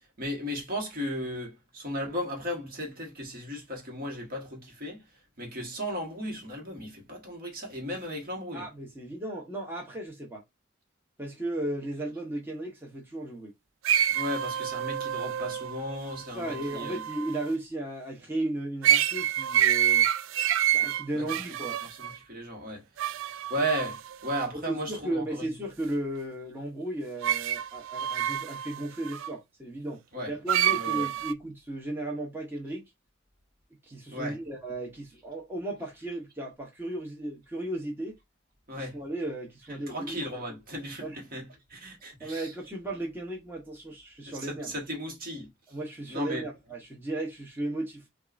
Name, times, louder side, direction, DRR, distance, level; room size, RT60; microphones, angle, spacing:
voice 1, 0.2-5.0 5.4-8.7 14.1-17.0 21.1-21.3 21.8-22.8 23.1-25.5 30.1-30.3 30.7-31.1 34.1-34.4 38.7-39.0 39.9-42.5 44.3-45.5 46.1-46.5, equal, 50° right, 1.3 m, -35 dB
voice 2, 8.5-10.4 11.2-13.5 16.3-20.1 20.7-21.8 24.5-30.0 30.3-32.8 33.9-38.2 38.7-40.2 41.0-41.2 42.2-44.7 45.7-48.1, right 1 dB, 10° right, 0.8 m, -35 dB
sound 1, 13.8-17.5 18.8-22.2 23.0-24.5 27.2-29.3 30.5-31.3, right 10 dB, 85° right, 0.3 m, -27 dB
5.3 x 2.4 x 2.5 m
head